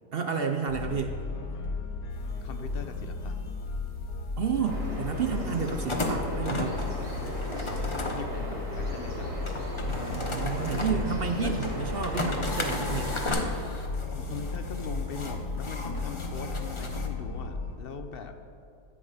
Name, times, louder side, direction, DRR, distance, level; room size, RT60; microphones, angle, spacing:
voice 1, 0.1-1.2 4.4-6.8 9.9-13.2, right 6 dB, 70° right, 6 dB, 0.5 m, -31 dB
sound 1, 0.7-17.8, left 4 dB, 90° left, 1.6 m, -35 dB
sound 2, 2.1-17.1, left 2 dB, 25° left, 0.8 m, -37 dB
voice 2, 2.4-3.4 7.7-9.5 11.4-11.5 12.2-12.4 14.1-18.3, left 5 dB, 50° left, 7 dB, 0.7 m, -41 dB
Bird vocalization bird call bird song, 4.7-13.3, equal, 40° right, 2.9 m, -37 dB
14.0 x 8.6 x 5.0 m, 2.4 s
omnidirectional pair, 1.8 m